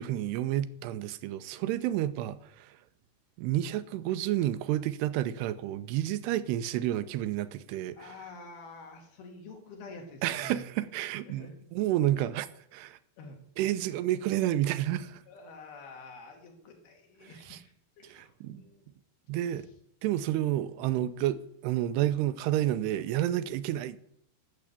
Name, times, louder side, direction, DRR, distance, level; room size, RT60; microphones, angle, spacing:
voice 1, 0.0-2.8 3.4-8.2 10.2-12.5 12.7-13.0 13.6-15.2 17.2-17.6 18.0-18.6 19.3-19.7 20.0-24.0, right 13 dB, 85° right, 2.8 m, -30 dB
voice 2, 8.0-10.7 11.3-11.6 12.1-12.2 13.2-13.4 15.3-18.9 19.3-19.6, left 3 dB, 70° left, 4.2 m, -48 dB
12.5 x 7.5 x 8.3 m
omnidirectional pair, 4.8 m